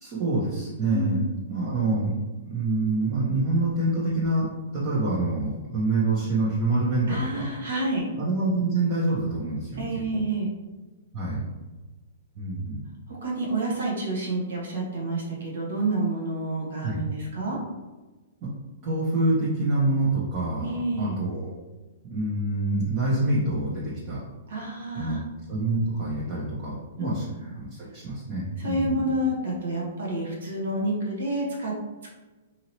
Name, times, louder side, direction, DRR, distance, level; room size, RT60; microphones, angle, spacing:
voice 1, 0.0-4.5 4.7-7.5 8.1-9.9 10.1-10.2 11.1-11.4 12.4-12.8 16.8-17.0 18.4-18.5 18.8-21.6 22.1-24.2 24.9-25.2 25.5-27.2 27.5-29.1, right 2 dB, 35° right, -8 dB, 0.9 m, -26 dB
voice 2, 0.9-1.2 7.1-8.1 9.8-10.5 13.1-17.6 20.6-21.2 24.5-25.2 27.0-27.3 28.6-31.7, right 1 dB, 75° right, -2 dB, 1.1 m, -29 dB
2.9 x 2.7 x 2.9 m, 1.2 s
hypercardioid pair, 140°, 0 cm